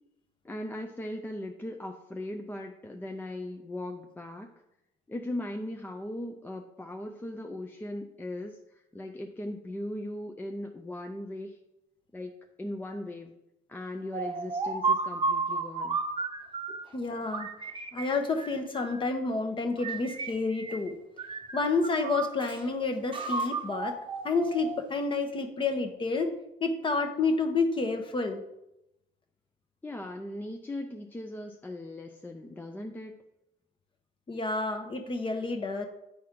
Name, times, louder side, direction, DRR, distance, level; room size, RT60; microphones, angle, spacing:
voice 1, 0.4-4.5 5.1-11.6 12.1-12.3 12.6-13.3 13.7-16.0 16.7-16.8 29.8-33.2, left 1 dB, 10° left, 3 dB, 0.5 m, -38 dB
sound 1, 14.1-16.9 17.3-19.1 19.8-20.9 21.2-22.6 23.1-24.9, right 4 dB, 30° right, 0.8 m, -33 dB
voice 2, 16.9-17.5 17.9-21.0 21.5-24.0 24.2-26.3 26.6-28.4 34.3-35.9, left 3 dB, 30° left, 6 dB, 1.0 m, -29 dB
9.5 x 4.2 x 3.7 m, 0.85 s
cardioid pair, 110°, 17 cm